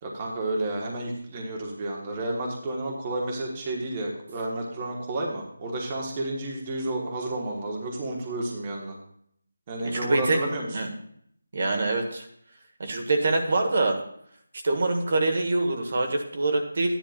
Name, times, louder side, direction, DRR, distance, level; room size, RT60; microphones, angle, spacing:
voice 1, 0.0-9.0 9.7-10.7, right 2 dB, 20° right, -1 dB, 1.4 m, -31 dB
voice 2, 9.8-10.4 10.7-10.9 11.5-12.3 12.8-14.0 14.6-17.0, right 2 dB, 50° right, 3 dB, 1.5 m, -25 dB
13.5 x 10.5 x 2.5 m, 0.67 s
figure-of-eight pair, 170°, 0 cm